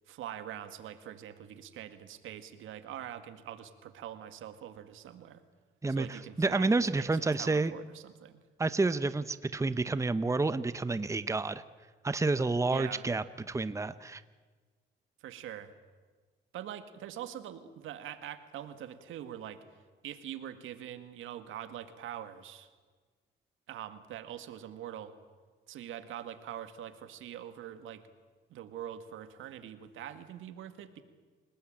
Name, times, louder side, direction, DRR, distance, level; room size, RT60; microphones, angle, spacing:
voice 1, 0.1-5.4 5.9-8.4 12.7-13.0 15.2-15.7 16.5-19.6 20.0-22.7 23.7-25.1 25.7-28.0 28.5-31.0, right 10 dB, 85° right, 10 dB, 1.9 m, -44 dB
voice 2, 5.8-7.7 8.6-11.6 12.0-14.2, right 3 dB, 15° right, 14 dB, 0.9 m, -29 dB
28.5 x 19.0 x 8.9 m, 1.4 s
cardioid pair, 90°, 20 cm